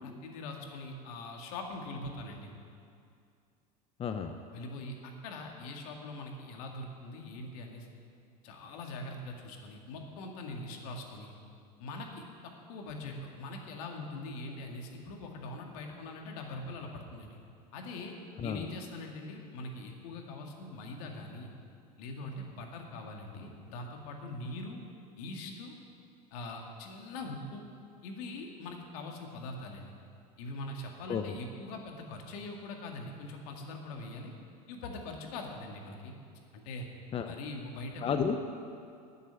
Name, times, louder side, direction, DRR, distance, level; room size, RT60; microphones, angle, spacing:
voice 1, 0.0-2.5 4.5-7.9 8.4-11.3 11.8-17.4 17.7-18.1 18.4-21.5 22.0-24.8 25.2-25.7 26.3-27.6 28.0-29.9 30.4-34.3 34.7-36.1 36.5-36.9 37.2-38.2, left 2 dB, 70° left, 2 dB, 2.0 m, -42 dB
voice 2, 4.0-4.3 18.4-18.6 31.1-31.4 37.1-37.3 38.0-38.4, left 7 dB, 30° left, 6 dB, 0.7 m, -32 dB
10.0 x 8.0 x 9.5 m, 2.4 s
hypercardioid pair, 100°, 20 cm